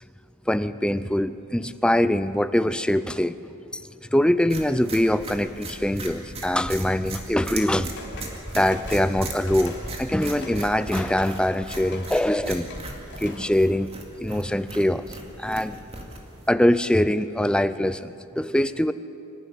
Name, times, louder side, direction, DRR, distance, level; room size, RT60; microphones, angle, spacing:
voice 1, 0.5-3.4 3.7-3.8 4.1-7.9 8.5-12.7 13.2-13.9 14.2-15.1 15.4-15.8 16.5-18.9, left 1 dB, 5° left, 13 dB, 0.4 m, -23 dB
sound 1, 4.5-16.5, right 2 dB, 30° right, 2.2 m, -38 dB
sound 2, 7.4-13.5, left 2 dB, 55° left, 3.3 m, -42 dB
25.0 x 12.0 x 9.5 m, 2.8 s
head